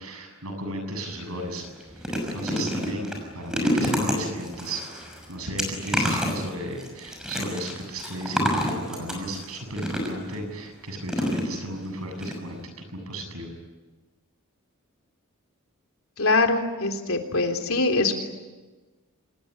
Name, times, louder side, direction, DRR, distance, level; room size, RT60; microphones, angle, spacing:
voice 1, 0.0-2.1 2.3-5.0 5.3-13.5, right 1 dB, 85° right, 5 dB, 7.8 m, -34 dB
sound 1, 1.0-1.2 1.6-10.4 11.1-11.9 12.2-12.3 12.6-12.7, equal, 5° right, 6.0 m, -29 dB
voice 2, 16.2-18.1, left 3 dB, 75° left, 4 dB, 3.5 m, -23 dB
26.0 x 20.5 x 9.9 m, 1.2 s
head